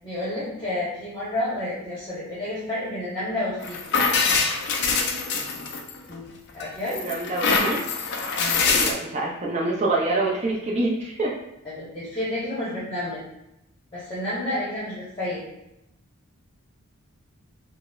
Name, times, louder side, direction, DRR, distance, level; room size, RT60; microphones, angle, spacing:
voice 1, 0.0-3.8 6.0-6.3 6.5-7.0 8.4-8.6 11.6-13.2 13.9-15.4, left 1 dB, 20° left, -9 dB, 0.8 m, -30 dB
sound 1, 3.6-6.1 6.6-8.9, left 4 dB, 50° left, 0.4 m, -24 dB
voice 2, 6.9-7.8 8.7-11.3, right 2 dB, 30° right, -3 dB, 0.4 m, -26 dB
4.8 x 2.0 x 2.3 m, 0.87 s
head